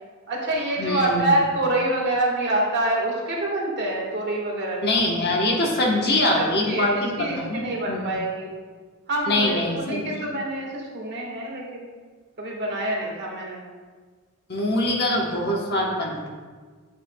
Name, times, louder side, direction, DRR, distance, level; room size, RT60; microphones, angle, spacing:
voice 1, 0.3-5.0 6.1-8.5 9.1-11.9 12.4-13.6, right 1 dB, 50° right, -2 dB, 1.6 m, -26 dB
voice 2, 0.8-1.3 4.8-8.2 9.3-10.3 14.5-16.3, left 1 dB, 50° left, -1 dB, 1.2 m, -24 dB
9.4 x 6.6 x 2.3 m, 1.5 s
head